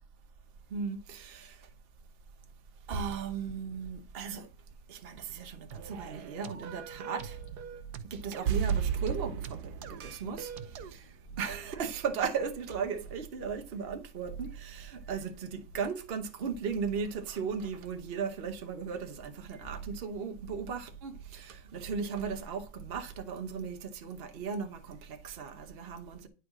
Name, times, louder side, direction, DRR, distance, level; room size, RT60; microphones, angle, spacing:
voice 1, 0.7-1.6 2.9-4.5 4.9-7.4 8.1-9.7 10.0-10.5 10.9-11.0 11.4-26.3, right 6 dB, 40° right, 0.9 m, -36 dB
sound 1, 5.7-10.9, right 7 dB, 65° right, 1.1 m, -45 dB
sound 2, 6.9-14.0 14.2-19.3 19.6-20.1 20.3-23.3, right 7 dB, 70° left, 1.9 m, -50 dB
sound 3, 8.5-11.7 11.9-12.0, right 7 dB, 85° right, 1.7 m, -33 dB
10.5 x 4.3 x 6.0 m
omnidirectional pair, 2.2 m